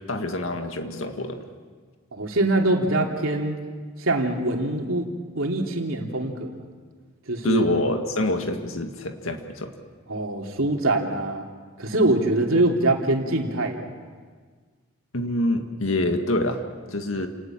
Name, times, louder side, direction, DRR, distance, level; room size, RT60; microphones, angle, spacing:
voice 1, 0.1-1.4 7.4-9.7 15.1-16.6 16.9-17.3, left 1 dB, 85° left, 5 dB, 1.9 m, -26 dB
voice 2, 2.1-3.6 4.0-5.1 5.3-6.6 7.3-7.6 10.1-11.5 11.8-13.8, right 2 dB, 85° right, 1 dB, 3.0 m, -23 dB
30.0 x 19.5 x 7.5 m, 1.5 s
head